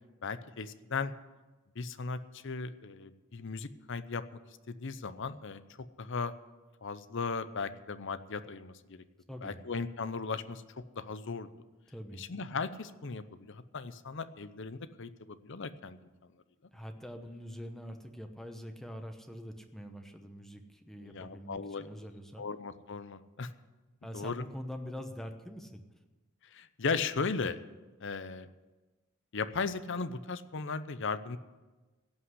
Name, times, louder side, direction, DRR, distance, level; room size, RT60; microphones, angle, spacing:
voice 1, 0.2-1.1 1.8-4.2 4.7-5.6 6.0-6.3 6.8-9.0 9.4-10.6 10.9-11.5 12.2-16.0 21.0-21.9 22.4-23.5 24.1-24.4 26.5-27.6 28.0-28.5 29.3-31.4, left 4 dB, 60° left, 13 dB, 0.7 m, -37 dB
voice 2, 9.3-9.6 11.9-12.2 16.7-22.5 24.0-25.8, equal, ahead, 5 dB, 0.9 m, -44 dB
16.5 x 5.9 x 9.7 m, 1.2 s
head